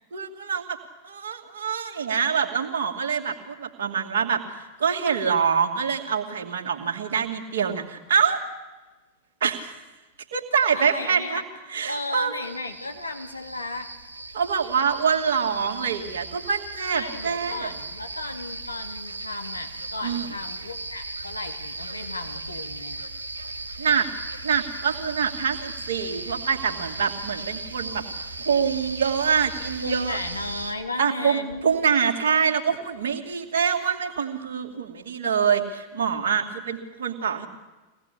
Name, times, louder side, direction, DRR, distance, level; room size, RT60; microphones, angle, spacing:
voice 1, 0.1-0.8 1.0-8.4 9.4-9.8 10.3-11.4 11.7-12.3 14.3-17.7 20.0-20.3 23.8-24.1 24.4-28.0 28.4-30.2 31.0-37.5, right 6 dB, 60° right, 2 dB, 2.6 m, -25 dB
voice 2, 10.7-11.4 11.9-13.9 16.9-23.0 29.8-31.7, left 2 dB, 80° left, 4 dB, 2.5 m, -34 dB
sound 1, 12.4-30.7, right 2 dB, 80° right, 1.8 m, -37 dB
24.0 x 18.5 x 8.5 m, 1.2 s
figure-of-eight pair, 90°, 0 cm